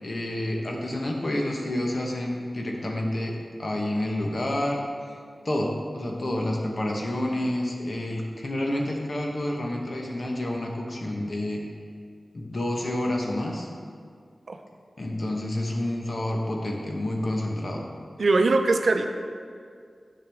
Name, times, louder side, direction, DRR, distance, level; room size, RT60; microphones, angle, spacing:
voice 1, 0.0-4.8 5.4-11.6 12.3-13.7 15.0-17.8, left 1 dB, 55° left, 0 dB, 1.1 m, -29 dB
voice 2, 18.2-19.1, right 3 dB, 75° right, 6 dB, 0.5 m, -21 dB
9.8 x 5.9 x 3.5 m, 2.1 s
wide cardioid pair, 75°, 0 cm